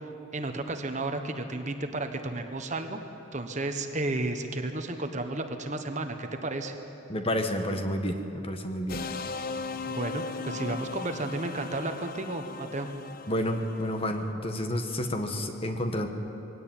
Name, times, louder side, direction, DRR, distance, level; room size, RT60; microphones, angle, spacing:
voice 1, 0.3-3.0 3.3-6.7 9.8-12.9, right 2 dB, 35° right, 6 dB, 1.2 m, -32 dB
voice 2, 7.1-9.0 13.3-16.1, equal, 30° left, 5 dB, 1.4 m, -30 dB
sound 1, 8.9-14.2, left 4 dB, 45° left, 0.7 m, -38 dB
21.5 x 17.0 x 9.2 m, 2.9 s
head